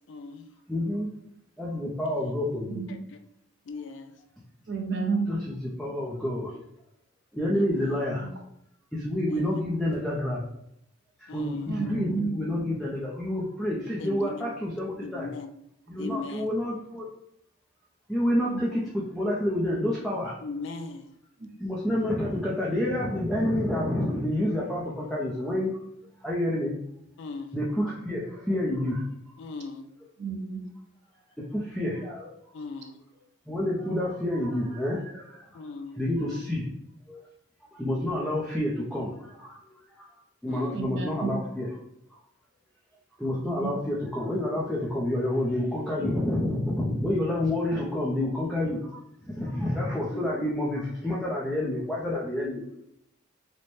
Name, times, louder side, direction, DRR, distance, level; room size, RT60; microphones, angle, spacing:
voice 1, 0.1-0.5 2.0-2.4 2.9-3.2 3.7-4.2 5.9-6.1 7.5-8.0 9.3-9.8 11.3-11.8 14.0-14.6 15.0-15.5 16.0-16.5 20.4-21.1 27.2-27.5 29.4-29.9 32.5-33.0 35.5-36.0 40.5-41.0 50.1-50.4, left 4 dB, 65° left, 7 dB, 0.4 m, -39 dB
voice 2, 0.7-1.1 1.6-2.8 5.3-5.4 5.8-6.6 7.3-8.3 8.9-10.4 11.2-15.3 15.9-17.1 18.1-18.8 19.1-20.3 21.6-25.8 26.2-26.7 27.5-29.0 31.4-32.3 33.5-35.6 36.0-36.7 37.1-37.2 37.7-40.1 40.4-41.7 42.1-42.2 43.2-49.0 49.3-52.6, left 1 dB, ahead, -5 dB, 0.4 m, -28 dB
voice 3, 2.6-3.0 4.7-5.3 8.2-8.3 11.7-12.3 18.5-18.7 21.4-21.5 30.2-30.6 40.7-41.3 43.3-43.7, right 5 dB, 60° right, 3 dB, 0.6 m, -31 dB
4.2 x 2.1 x 3.1 m, 0.77 s
head